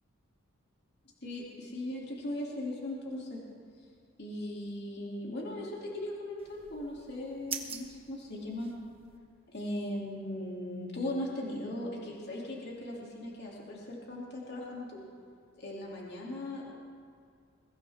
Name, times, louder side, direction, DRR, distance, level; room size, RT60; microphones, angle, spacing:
voice 1, 1.2-3.4 4.2-8.7 9.5-15.0 15.6-16.6, left 1 dB, 45° left, -4 dB, 2.8 m, -38 dB
sound 1, 6.4-9.2, right 6 dB, 25° right, 1.2 m, -44 dB
22.5 x 16.5 x 3.6 m, 2.3 s
head